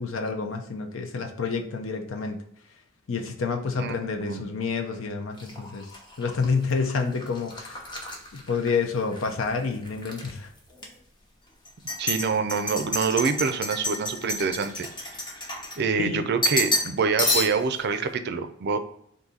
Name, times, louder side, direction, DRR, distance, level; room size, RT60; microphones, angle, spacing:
voice 1, 0.0-2.4 3.1-5.9 6.2-7.8 8.5-10.5 16.0-16.3, left 4 dB, 70° left, 4 dB, 0.5 m, -28 dB
voice 2, 3.8-4.5 12.0-14.9 15.8-18.8, right 5 dB, 55° right, 9 dB, 0.4 m, -26 dB
sound 1, 5.4-9.3 9.6-10.3 10.8-10.9 11.7-16.1 16.4-16.9 17.2-17.8, left 2 dB, 25° left, 0.8 m, -30 dB
4.0 x 2.6 x 3.7 m, 0.72 s
head